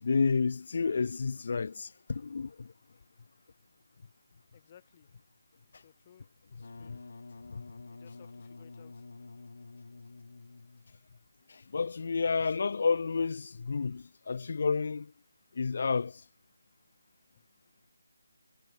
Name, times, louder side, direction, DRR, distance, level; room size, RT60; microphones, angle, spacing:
voice 1, 0.0-2.7 7.5-7.7 11.5-15.1 15.6-16.2, left 5 dB, 40° left, 0.3 m, -30 dB
voice 2, 4.5-5.1 5.7-7.0 7.9-9.0 17.3-17.4, left 9 dB, 20° left, 3.0 m, -60 dB
Wind instrument woodwind instrument, 6.5-11.1, left 3 dB, 60° left, 1.1 m, -49 dB
hypercardioid pair, 175°, 0 cm